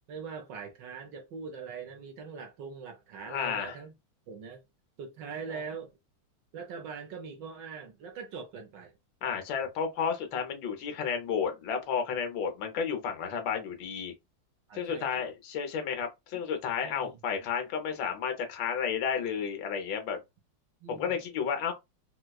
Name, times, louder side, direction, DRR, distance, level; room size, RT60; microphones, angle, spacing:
voice 1, 0.1-3.9 4.3-4.6 5.0-5.9 6.5-8.9 14.7-15.3 16.8-17.2 20.8-21.2, right 5 dB, 70° right, 1.2 m, -42 dB
voice 2, 3.2-3.8 5.5-5.6 9.2-14.1 14.7-20.2 20.9-21.7, left 7 dB, 70° left, 1.5 m, -32 dB
4.6 x 2.2 x 2.3 m
omnidirectional pair, 2.3 m